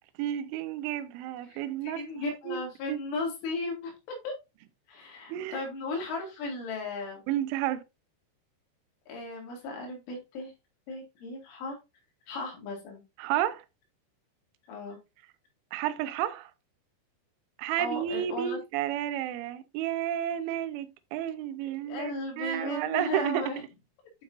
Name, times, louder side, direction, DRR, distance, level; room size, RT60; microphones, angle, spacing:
voice 1, 0.2-2.0 2.5-2.6 2.9-3.0 5.3-5.6 7.3-7.8 13.2-13.6 15.7-16.5 17.6-23.5, right 12 dB, 80° right, 3.1 m, -31 dB
voice 2, 1.5-3.9 4.2-4.3 4.9-7.2 9.1-10.5 10.9-11.8 12.3-13.0 14.7-15.0 17.8-18.6 21.9-23.6, left 2 dB, 75° left, 4.5 m, -36 dB
9.3 x 5.7 x 2.6 m
omnidirectional pair, 5.7 m